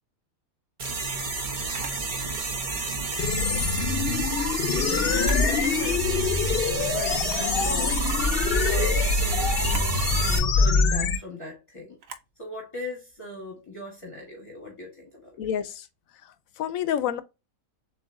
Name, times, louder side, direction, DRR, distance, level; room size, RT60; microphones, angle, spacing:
sound 1, 0.8-10.4, right 3 dB, 40° right, 1.0 m, -30 dB
Camera, 1.7-2.1 3.8-4.1 5.1-5.5 6.0-6.1 7.2-7.5 9.6-9.9 12.0-12.3, right 5 dB, 75° right, 1.2 m, -42 dB
sound 2, 3.2-11.2, left 4 dB, 60° left, 0.7 m, -24 dB
voice 1, 4.7-8.1 8.6-12.0 12.4-15.4, left 1 dB, 25° left, 1.3 m, -39 dB
voice 2, 15.4-15.9 16.2-17.2, left 9 dB, 80° left, 1.0 m, -29 dB
7.2 x 2.9 x 2.5 m
omnidirectional pair, 1.5 m